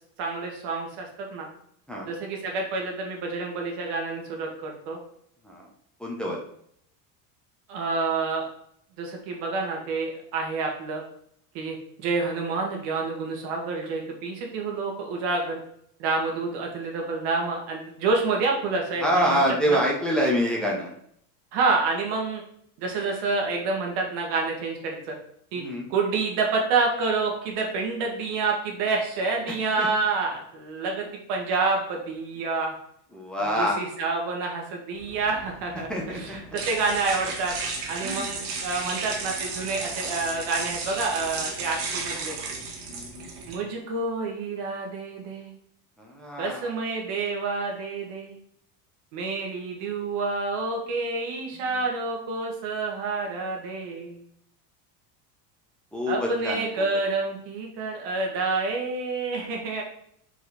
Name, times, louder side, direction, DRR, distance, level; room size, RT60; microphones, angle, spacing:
voice 1, 0.2-1.5 2.1-5.0 7.7-8.5 9.0-11.0 11.5-15.6 16.0-19.4 19.7-19.8 21.5-22.4 22.8-25.2 25.5-25.6 25.9-32.7 33.6-37.5 37.9-42.4 43.5-45.5 46.4-48.4 49.1-54.2 56.1-59.8, right 3 dB, 65° right, 1 dB, 2.0 m, -28 dB
voice 2, 6.0-6.4 19.0-20.9 25.5-25.9 29.5-29.9 33.1-33.8 35.7-36.4 38.0-38.3 38.9-39.1 42.9-43.3 46.0-46.7 51.6-51.7 55.9-56.9, equal, ahead, -3 dB, 1.3 m, -27 dB
sound 1, 34.9-43.5, right 4 dB, 90° right, 1.7 m, -34 dB
4.7 x 4.6 x 4.3 m, 0.69 s
supercardioid pair, 120°, 44 cm